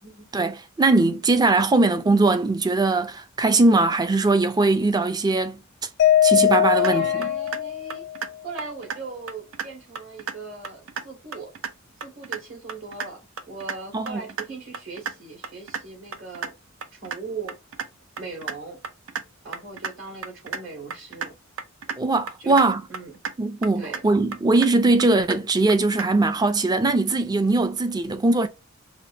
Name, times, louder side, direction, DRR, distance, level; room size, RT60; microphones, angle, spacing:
voice 1, 0.3-5.6 6.2-7.0 13.9-14.2 22.0-22.8 23.4-28.5, right 2 dB, 20° right, 0.4 m, -20 dB
Mallet percussion, 6.0-8.3, left 11 dB, 55° left, 0.3 m, -20 dB
sound 1, 6.5-6.9 7.2-7.6 7.9-8.3 8.6-9.0 9.3-9.7 10.0-10.4 10.6-11.0 11.3-11.7 12.0-12.4 12.7-13.1 13.4-13.8 14.1-14.5 14.7-15.1 15.4-15.8 16.1-16.5 16.8-17.2 17.5-17.9 18.2-18.6 18.8-19.2 19.5-19.9 20.2-20.6 20.9-21.3 21.6-22.0 22.3-22.7 22.9-23.3 23.6-24.0 24.3-24.7 25.0-25.4 25.7-26.1, right 6 dB, 85° right, 0.5 m, -32 dB
voice 2, 6.7-8.1 8.4-11.5 12.0-13.2 13.5-16.5 16.9-17.6 18.2-18.8 19.4-21.4 22.4-22.6 22.9-23.1 23.8-24.0, right 3 dB, 70° right, 2.4 m, -38 dB
5.1 x 2.2 x 2.7 m
head